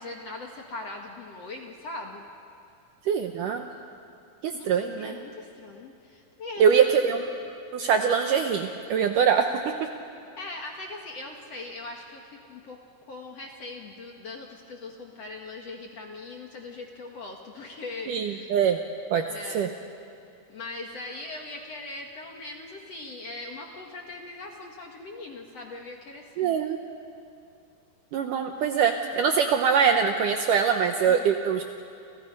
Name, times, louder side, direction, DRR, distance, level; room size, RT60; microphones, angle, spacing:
voice 1, 0.0-2.2 4.5-6.9 10.4-12.8 13.1-18.5 19.3-19.6 20.5-26.6 31.1-31.3, left 2 dB, 55° left, 1 dB, 2.0 m, -40 dB
voice 2, 3.1-3.7 4.4-5.1 6.6-7.2 7.7-9.5 18.1-18.8 19.1-19.2 19.5-19.7 26.4-26.8 28.1-31.6, right 7 dB, 75° right, 5 dB, 2.0 m, -23 dB
29.5 x 29.5 x 5.4 m, 2.5 s
omnidirectional pair, 4.7 m